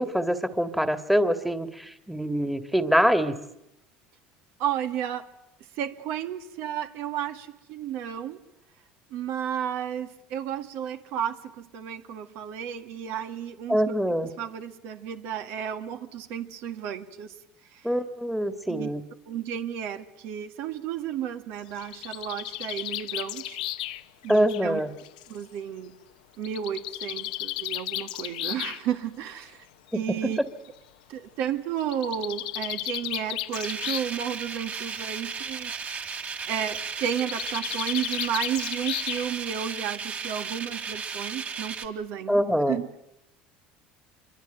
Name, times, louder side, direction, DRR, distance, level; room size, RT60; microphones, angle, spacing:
voice 1, 0.0-3.3 13.7-14.3 17.8-19.0 24.3-24.9 29.9-30.2 42.3-42.8, equal, ahead, 9 dB, 1.9 m, -24 dB
voice 2, 4.6-5.3 5.7-8.4 9.1-17.3 17.7-17.9 18.7-18.9 19.3-23.6 24.2-24.8 25.3-26.0 26.4-29.7 29.9-30.4 31.1-35.7 36.5-42.4 42.7-42.9, right 9 dB, 70° right, 7 dB, 2.0 m, -32 dB
Bird, 21.6-25.4 26.4-28.8 29.9-30.0 30.3-30.4 30.7-30.8 31.8-34.2 34.5-35.0 37.1-39.5, left 15 dB, 90° left, 1.1 m, -34 dB
sound 1, 33.5-41.9, right 6 dB, 40° right, 3.1 m, -35 dB
25.5 x 23.5 x 9.2 m, 0.86 s
supercardioid pair, 90°, 4 cm